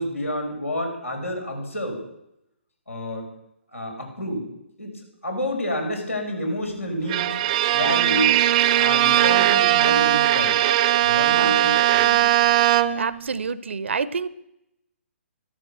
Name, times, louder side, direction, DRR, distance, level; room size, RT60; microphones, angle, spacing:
voice 1, 0.0-2.0 2.9-3.2 3.7-4.5 4.8-7.4 7.7-8.4 8.7-10.6 11.0-12.5, left 1 dB, 90° left, 1 dB, 5.3 m, -29 dB
Bowed string instrument, 7.1-13.2, right 13 dB, 35° right, 0.7 m, -19 dB
voice 2, 11.3-11.6 12.9-14.3, right 5 dB, 65° right, 17 dB, 0.8 m, -28 dB
14.0 x 13.0 x 6.3 m, 0.83 s
figure-of-eight pair, 130°, 7 cm